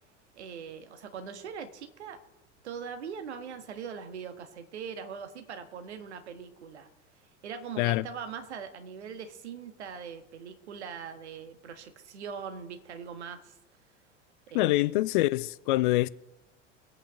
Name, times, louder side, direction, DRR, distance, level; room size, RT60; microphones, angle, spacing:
voice 1, 0.3-2.2 2.6-6.9 7.4-13.5 14.5-14.9, right 6 dB, 65° right, 1.5 m, -41 dB
voice 2, 14.5-16.1, left 18 dB, 45° left, 0.4 m, -25 dB
24.0 x 8.6 x 3.7 m
figure-of-eight pair, 75°, 36 cm